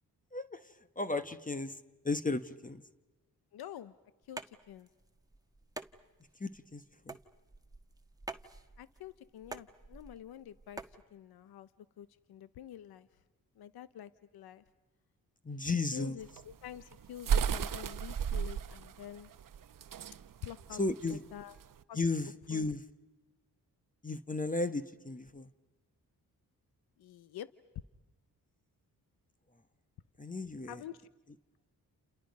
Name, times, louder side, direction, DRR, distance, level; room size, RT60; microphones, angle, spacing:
voice 1, 1.0-1.8 2.0-2.8 6.4-7.2 15.4-16.2 20.8-21.2 21.9-22.8 24.0-25.5 30.2-30.8, left 3 dB, 20° left, 11 dB, 1.2 m, -34 dB
voice 2, 3.5-3.9 4.3-4.9 8.8-10.8 11.1-11.7 12.0-13.1 13.6-14.6 15.6-19.3 20.4-20.8 21.1-21.5 21.9-22.0 22.5-22.7 27.0-27.5 30.7-31.1, left 11 dB, 85° left, 14 dB, 0.8 m, -47 dB
sound 1, 4.2-11.0, right 2 dB, 10° right, 1.4 m, -48 dB
sound 2, 16.2-21.8, right 8 dB, 60° right, 0.9 m, -34 dB
29.5 x 28.5 x 5.3 m, 1.1 s
cardioid pair, 60°, 36 cm